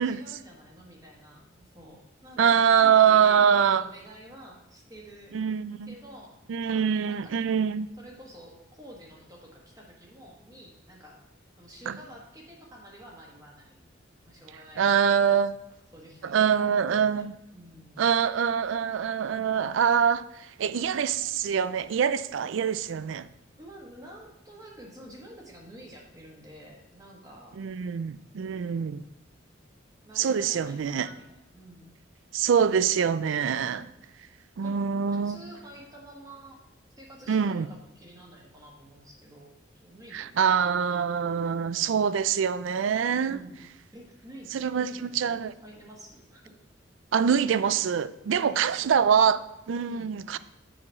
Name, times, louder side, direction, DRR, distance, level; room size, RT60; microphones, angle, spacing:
voice 1, 0.0-5.4 5.9-6.4 6.7-7.4 8.0-11.2 11.6-13.9 14.2-15.3 15.9-18.1 23.6-27.6 30.0-31.9 33.5-33.9 34.6-34.8 35.1-36.6 37.0-39.5 39.8-40.7 41.5-42.1 43.1-43.6 43.9-46.6 48.3-49.0 49.9-50.1, right 1 dB, 20° right, 1.3 m, -49 dB
voice 2, 2.4-3.8 5.3-5.9 6.5-7.9 11.9-12.0 14.8-15.6 16.2-17.3 18.0-23.3 27.6-29.0 30.2-31.1 32.3-33.9 34.6-35.4 37.3-37.7 40.1-43.4 44.5-45.5 47.1-50.4, right 7 dB, 75° right, 0.4 m, -24 dB
7.2 x 4.8 x 5.6 m
head